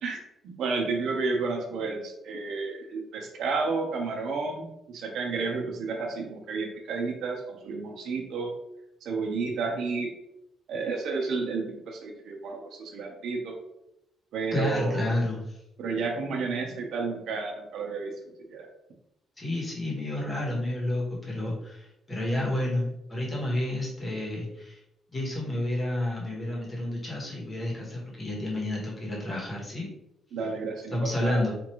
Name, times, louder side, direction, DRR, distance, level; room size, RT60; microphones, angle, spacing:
voice 1, 0.4-8.5 9.0-10.1 10.7-13.5 14.3-15.0 15.8-18.1 18.5-18.7 30.3-31.4, right 4 dB, 65° right, 2 dB, 0.8 m, -31 dB
voice 2, 14.5-15.6 19.4-24.8 25.1-29.9 30.9-31.5, left 1 dB, 20° left, -4 dB, 1.1 m, -30 dB
4.4 x 2.5 x 3.0 m, 0.85 s
cardioid pair, 160°, 0 cm